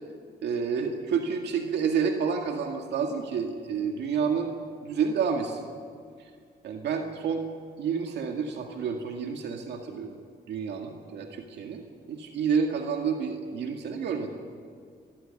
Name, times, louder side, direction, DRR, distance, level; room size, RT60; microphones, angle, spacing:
voice 1, 0.4-4.5 4.8-5.7 6.2-6.3 6.6-7.5 7.8-10.2 10.5-14.3, right 6 dB, 90° right, 3 dB, 2.0 m, -29 dB
25.5 x 14.5 x 9.8 m, 2.1 s
cardioid pair, 100°, 17 cm